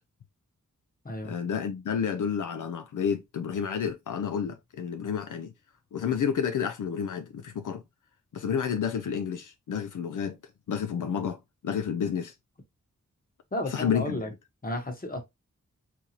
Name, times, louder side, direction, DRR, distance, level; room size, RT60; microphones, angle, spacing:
voice 1, 1.2-5.5 5.9-7.8 8.3-10.4 10.7-12.3 13.7-14.2, left 7 dB, 75° left, 0.5 m, -30 dB
voice 2, 13.5-14.3 14.6-15.2, left 1 dB, 30° left, 1.1 m, -32 dB
3.8 x 2.7 x 2.8 m
wide cardioid pair, 95°, 31 cm